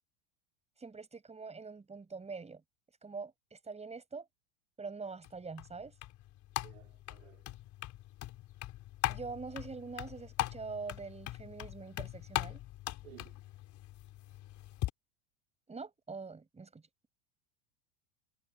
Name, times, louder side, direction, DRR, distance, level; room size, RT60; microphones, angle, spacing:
voice 1, 0.8-2.6 3.0-4.3 4.8-5.9 9.1-12.6 15.7-16.8, right 4 dB, 15° right, 7.2 m, -44 dB
sound 1, 5.2-14.9, left 15 dB, 45° left, 3.9 m, -41 dB
voice 2, 6.6-7.4 13.0-13.4, right 15 dB, 70° right, 4.3 m, -56 dB
hypercardioid pair, 85°, 40 cm